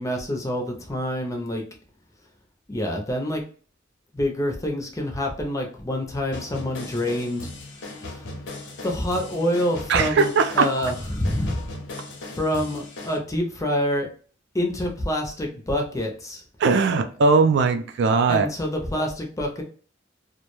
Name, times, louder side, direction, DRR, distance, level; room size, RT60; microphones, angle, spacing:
voice 1, 0.0-1.6 2.7-3.4 4.1-7.5 8.0-8.3 8.8-11.6 12.3-14.1 14.5-16.4 18.3-19.6, left 1 dB, 15° left, 2 dB, 0.5 m, -27 dB
sound 1, 6.3-13.2, left 2 dB, 65° left, 0.6 m, -38 dB
voice 2, 9.9-10.7 16.6-18.5, right 4 dB, 65° right, 7 dB, 0.3 m, -19 dB
2.2 x 2.1 x 2.9 m, 0.42 s
head